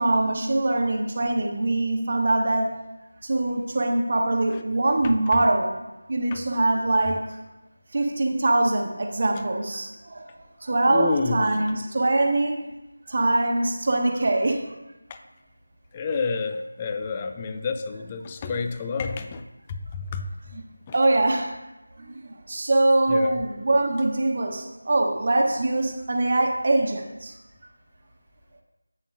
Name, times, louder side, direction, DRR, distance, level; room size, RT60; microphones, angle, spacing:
voice 1, 0.0-2.7 3.2-5.7 6.1-7.4 7.9-12.6 13.1-14.7 20.5-20.6 20.9-21.5 22.0-27.3, right 2 dB, 40° right, 2 dB, 1.2 m, -23 dB
voice 2, 10.9-11.4 15.9-19.4 19.7-20.3 23.1-23.4, left 4 dB, 15° left, 8 dB, 0.4 m, -29 dB
11.0 x 8.2 x 2.6 m, 1.0 s
figure-of-eight pair, 170°, 0 cm